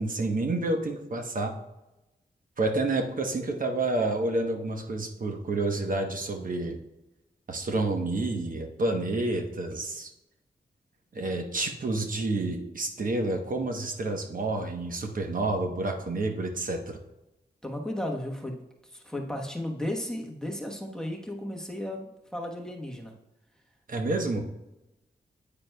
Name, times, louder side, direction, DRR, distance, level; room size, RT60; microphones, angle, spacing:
voice 1, 0.0-1.5 2.6-6.8 7.5-10.1 11.1-17.0 23.9-24.4, right 2 dB, 55° right, 4 dB, 1.0 m, -29 dB
voice 2, 17.6-23.1, left 1 dB, 5° left, 0 dB, 1.1 m, -35 dB
9.3 x 8.9 x 2.2 m, 0.93 s
wide cardioid pair, 120°, 17 cm